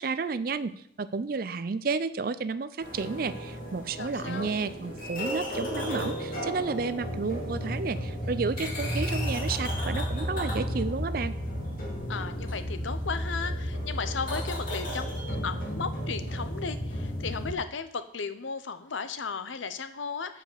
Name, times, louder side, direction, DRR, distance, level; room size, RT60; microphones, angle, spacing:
voice 1, 0.0-11.4, right 4 dB, 50° right, 14 dB, 0.4 m, -31 dB
sound 1, 2.8-17.5, equal, 45° left, 2.4 m, -33 dB
voice 2, 4.0-4.5 12.1-20.4, left 5 dB, 90° left, 11 dB, 0.8 m, -35 dB
7.9 x 5.0 x 6.8 m, 0.67 s
head